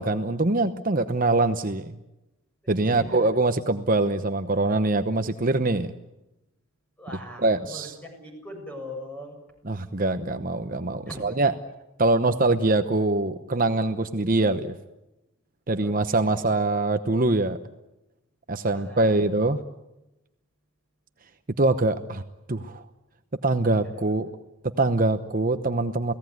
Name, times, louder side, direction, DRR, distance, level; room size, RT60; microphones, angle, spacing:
voice 1, 0.0-1.9 2.7-5.9 7.4-7.9 9.7-11.5 12.0-14.7 15.7-17.6 18.5-19.6 21.6-22.2 22.5-22.8 23.4-24.3 24.6-26.1, right 2 dB, 40° right, 9 dB, 0.9 m, -23 dB
voice 2, 2.6-3.2 7.0-9.4 11.1-11.2 15.7-16.4 18.7-19.2 23.8-24.0, equal, 5° left, 2 dB, 7.3 m, -41 dB
29.5 x 18.0 x 9.4 m, 0.96 s
head